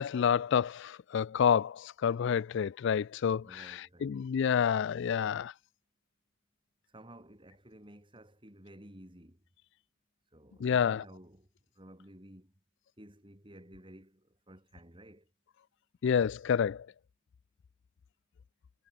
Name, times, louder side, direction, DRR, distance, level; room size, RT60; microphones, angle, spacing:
voice 1, 0.0-5.5 10.6-11.0 16.0-16.9, left 7 dB, 60° left, 0.3 m, -29 dB
voice 2, 3.4-4.3 6.9-9.4 10.3-11.5 11.8-12.5 13.0-15.3, right 1 dB, 25° right, 6.0 m, -54 dB
head